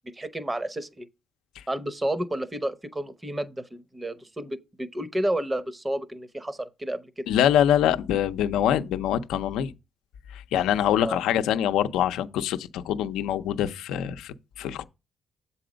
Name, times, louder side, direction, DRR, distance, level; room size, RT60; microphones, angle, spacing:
voice 1, 0.1-1.1 1.7-7.3 11.0-11.2, right 1 dB, 20° right, 0.7 m, -31 dB
voice 2, 7.3-9.7 10.3-14.8, left 10 dB, 90° left, 0.5 m, -24 dB
7.7 x 4.1 x 5.0 m
cardioid pair, 90°, 0 cm